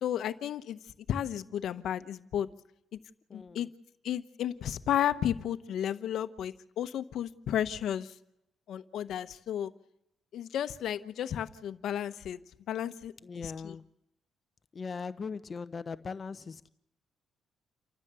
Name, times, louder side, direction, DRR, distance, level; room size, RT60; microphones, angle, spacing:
voice 1, 0.0-0.8 1.1-2.5 3.3-3.7 4.0-8.1 8.7-9.7 10.3-12.4 12.7-13.8, left 10 dB, 75° left, 11 dB, 1.0 m, -33 dB
voice 2, 3.3-3.6 13.2-13.8 14.7-16.7, left 5 dB, 40° left, 12 dB, 0.8 m, -39 dB
29.0 x 14.0 x 6.9 m, 0.84 s
cardioid pair, 90°, 0 cm